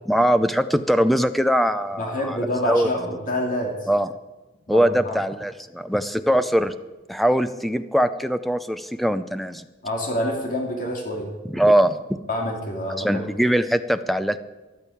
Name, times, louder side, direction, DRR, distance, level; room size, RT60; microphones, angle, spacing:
voice 1, 0.1-2.9 3.9-4.1 4.7-6.7 7.1-9.6 11.5-12.0 13.0-14.4, equal, ahead, 11 dB, 0.5 m, -21 dB
voice 2, 2.0-3.8 4.7-5.2 9.8-11.3 12.3-13.2, left 1 dB, 40° left, 0 dB, 2.8 m, -27 dB
14.0 x 11.0 x 8.6 m, 1.2 s
head